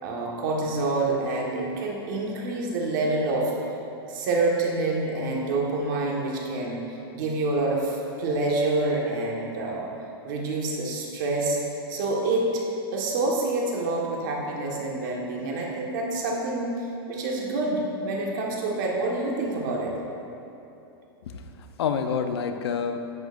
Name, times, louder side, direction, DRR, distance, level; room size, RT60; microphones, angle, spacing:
voice 1, 0.0-3.6 4.1-9.9 10.2-11.6 11.9-12.6 12.9-19.9, right 2 dB, 50° right, -1 dB, 1.5 m, -27 dB
voice 2, 21.2-23.0, left 6 dB, 80° left, 7 dB, 0.7 m, -28 dB
11.0 x 7.9 x 2.6 m, 2.9 s
supercardioid pair, 165°, 13 cm